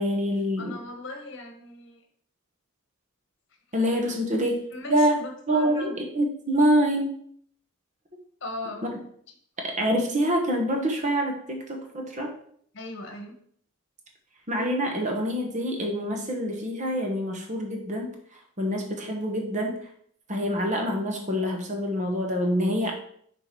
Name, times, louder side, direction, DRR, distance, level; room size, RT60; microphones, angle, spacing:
voice 1, 0.0-0.8 3.7-4.6 4.9-5.2 5.5-7.1 8.8-9.0 9.6-12.3 14.5-18.1 18.6-19.7 20.3-22.9, equal, 35° right, 2 dB, 1.2 m, -26 dB
voice 2, 0.6-2.0 4.7-5.9 8.4-8.9 12.7-13.4, left 2 dB, 55° left, 4 dB, 1.2 m, -38 dB
6.4 x 3.9 x 4.7 m, 0.62 s
head